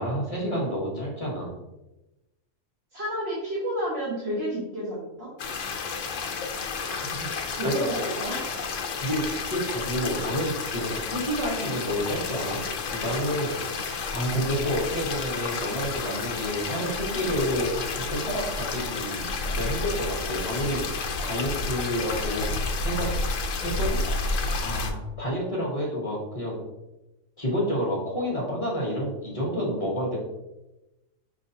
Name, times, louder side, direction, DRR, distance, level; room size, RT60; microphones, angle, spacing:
voice 1, 0.0-1.6 6.9-7.9 9.0-12.6 12.9-13.6 14.1-20.9 21.2-22.5 22.8-23.1 23.6-26.6 27.4-30.2, equal, 30° left, -4 dB, 1.0 m, -29 dB
voice 2, 2.9-5.3 7.5-8.4, equal, 55° right, -6 dB, 1.3 m, -30 dB
sound 1, 5.4-24.9, left 4 dB, 75° left, 1.0 m, -31 dB
5.2 x 3.2 x 2.7 m, 0.99 s
omnidirectional pair, 1.3 m